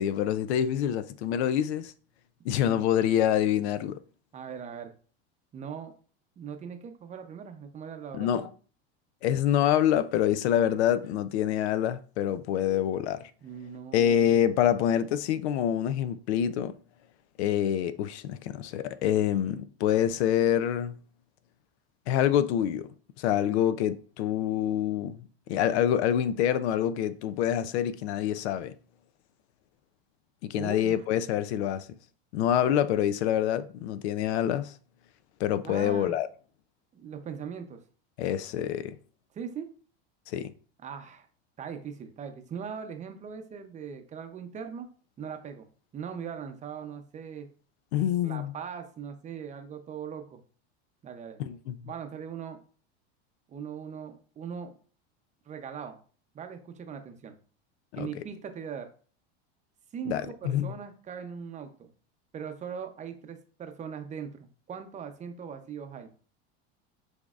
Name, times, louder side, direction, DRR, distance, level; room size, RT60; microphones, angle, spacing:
voice 1, 0.0-1.9 2.4-4.0 8.1-8.5 9.2-13.3 13.9-16.7 17.4-20.9 22.1-22.9 23.2-28.7 30.4-31.9 32.3-34.7 35.4-36.3 38.2-39.0 40.3-40.5 47.9-48.5 51.4-51.8 57.9-58.2 60.1-60.7, left 10 dB, 85° left, 0.5 m, -26 dB
voice 2, 4.3-4.9 5.5-5.9 6.4-8.5 13.4-14.3 30.6-31.0 35.6-36.2 36.9-37.8 39.3-39.7 40.8-41.3 41.6-44.9 45.2-45.7 45.9-47.5 48.2-50.4 51.0-51.4 51.8-52.6 53.5-54.7 55.5-56.0 56.3-57.3 57.9-58.9 59.9-61.9 62.3-66.1, right 7 dB, 20° right, 0.6 m, -40 dB
6.3 x 3.4 x 2.4 m
supercardioid pair, 135°, 32 cm